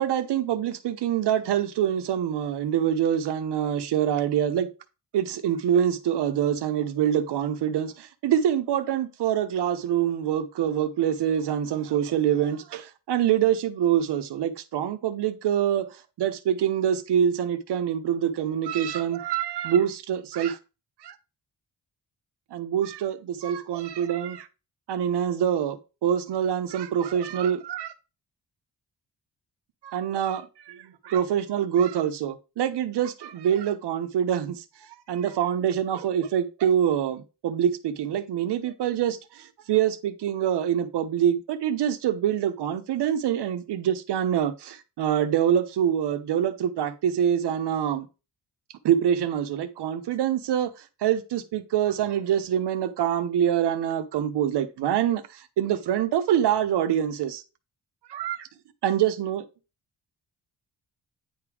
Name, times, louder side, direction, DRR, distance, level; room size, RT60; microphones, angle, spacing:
voice 1, 0.0-4.7 5.1-20.6 21.0-21.1 22.5-24.5 24.9-27.9 29.8-34.6 35.1-48.1 48.8-50.7 51.0-57.4 58.1-58.5 58.8-59.4, right 9 dB, 85° right, 0.9 m, -25 dB
9.6 x 3.4 x 4.8 m
cardioid pair, 95°, 40 cm